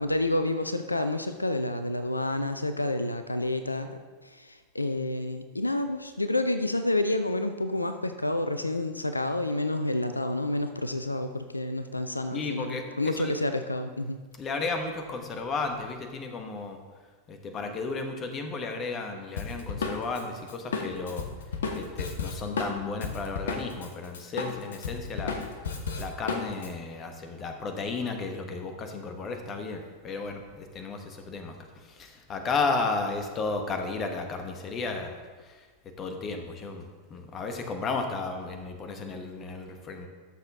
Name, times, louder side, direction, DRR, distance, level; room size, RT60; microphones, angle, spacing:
voice 1, 0.0-4.0 4.2-14.2, left 1 dB, 85° left, 9 dB, 0.4 m, -29 dB
voice 2, 12.3-13.3 14.4-16.8 17.3-21.2 21.7-25.4 26.0-31.5 31.9-35.2 36.0-40.1, left 3 dB, 25° left, 5 dB, 1.2 m, -33 dB
Drum kit, 19.4-23.9 24.1-26.7, left 5 dB, 65° left, 1.0 m, -33 dB
13.5 x 6.9 x 3.6 m, 1.4 s
figure-of-eight pair, 90°, 0 cm